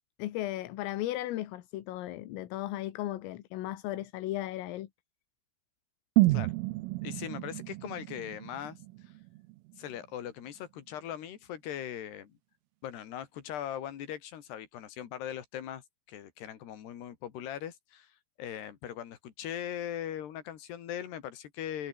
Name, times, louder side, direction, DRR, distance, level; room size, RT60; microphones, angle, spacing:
voice 1, 0.2-4.9, left 15 dB, 80° left, 4.2 m, -36 dB
sound 1, 6.2-10.1 10.4-10.5, right 20 dB, 85° right, 3.4 m, -30 dB
voice 2, 7.0-9.1 9.8-12.4 12.8-15.8 16.1-21.9, left 10 dB, 60° left, 4.1 m, -40 dB
omnidirectional pair, 6.0 m